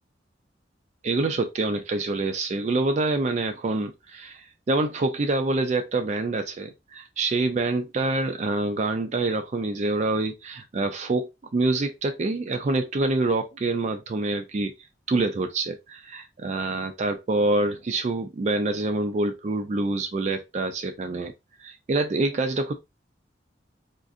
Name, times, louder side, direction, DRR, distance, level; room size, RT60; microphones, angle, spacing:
voice 1, 1.0-14.7 15.1-21.3 21.6-22.7, right 2 dB, 40° right, 0.4 m, -26 dB
3.7 x 2.5 x 2.4 m
head